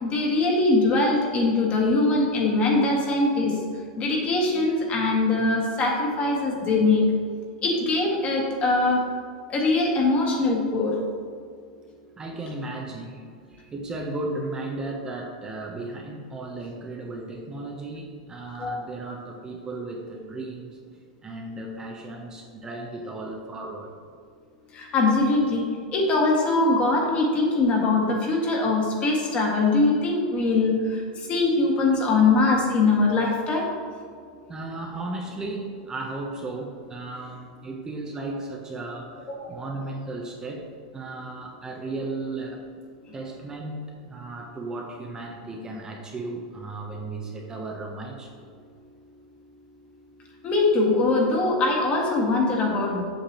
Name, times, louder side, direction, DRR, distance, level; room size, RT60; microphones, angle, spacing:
voice 1, 0.0-3.5 4.0-7.0 7.6-9.0 9.5-10.9 18.6-18.8 24.7-25.6 25.9-30.8 31.3-33.6 39.3-39.5 50.4-53.0, left 3 dB, 30° left, -1 dB, 1.7 m, -22 dB
voice 2, 12.2-13.2 13.5-20.8 21.2-23.9 34.5-39.2 39.5-42.6 43.1-48.5, right 2 dB, 20° right, 0 dB, 0.8 m, -35 dB
7.9 x 6.6 x 3.0 m, 2.2 s
hypercardioid pair, 125°, 4 cm